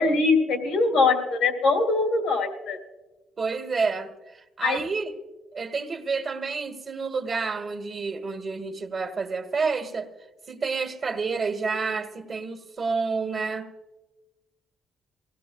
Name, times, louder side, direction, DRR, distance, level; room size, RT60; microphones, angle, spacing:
voice 1, 0.0-2.8 4.6-4.8, left 3 dB, 85° left, 3.3 m, -22 dB
voice 2, 3.4-4.1 4.6-5.1 5.5-10.1 10.5-13.7, right 4 dB, 45° right, 1.4 m, -29 dB
23.5 x 17.5 x 2.3 m
cardioid pair, 90°, 0 cm